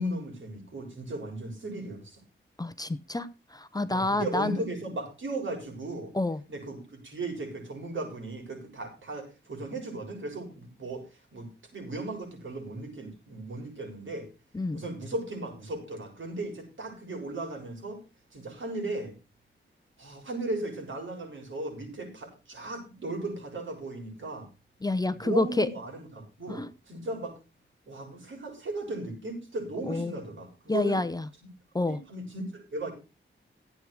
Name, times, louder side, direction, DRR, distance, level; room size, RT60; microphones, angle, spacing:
voice 1, 0.0-2.2 3.9-6.1 6.5-11.0 11.3-14.3 14.7-18.0 18.3-19.1 20.0-24.5 25.2-27.4 27.9-31.0 31.9-32.9, right 2 dB, 70° right, 6.9 m, -36 dB
voice 2, 2.6-4.6 6.1-6.4 14.5-14.8 24.8-25.7 26.5-26.7 29.9-30.1 30.7-31.2 31.7-32.0, left 2 dB, 20° left, 0.7 m, -28 dB
15.5 x 8.7 x 4.8 m
wide cardioid pair, 130°, 21 cm